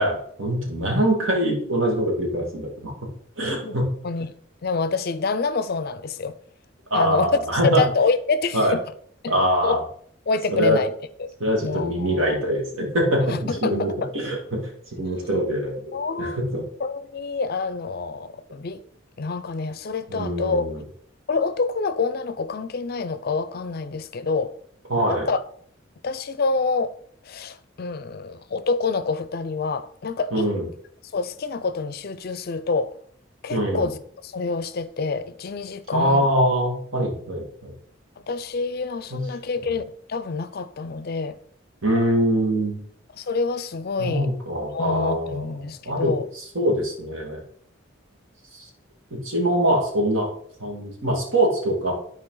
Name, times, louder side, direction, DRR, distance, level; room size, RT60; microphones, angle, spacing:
voice 1, 0.0-2.9 3.4-3.9 6.9-7.8 8.5-8.8 9.3-9.8 10.5-10.8 11.4-16.6 20.1-20.8 24.9-25.3 30.3-30.6 33.5-33.9 35.9-37.7 39.1-39.2 41.8-42.8 44.0-45.4 45.8-46.1 46.6-47.4 48.5-48.7 49.1-50.3 50.6-51.9, equal, 75° right, 2.2 m, -23 dB
voice 2, 4.6-6.4 6.9-7.4 7.8-8.8 9.2-9.3 9.6-9.8 10.3-10.9 11.2-11.3 11.6-12.4 13.3-14.1 15.9-16.4 16.8-18.8 19.2-20.8 21.3-24.5 25.1-25.4 26.0-27.0 27.2-30.5 31.1-33.0 33.4-34.0 34.2-36.3 38.3-41.4 43.2-44.3 44.7-46.3, left 4 dB, 50° left, 0.5 m, -27 dB
11.5 x 4.5 x 3.9 m
head